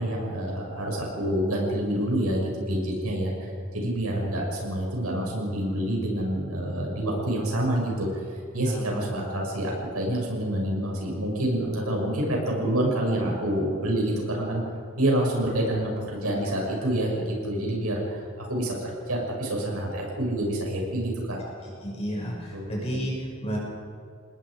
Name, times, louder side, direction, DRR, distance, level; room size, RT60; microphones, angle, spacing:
voice 1, 0.0-8.2 8.5-14.6 14.9-21.4 22.5-22.8, right 1 dB, 85° right, -1 dB, 6.6 m, -27 dB
voice 2, 8.6-9.2 21.8-23.6, equal, 30° left, -4 dB, 6.4 m, -31 dB
29.0 x 20.0 x 5.1 m, 2.3 s
head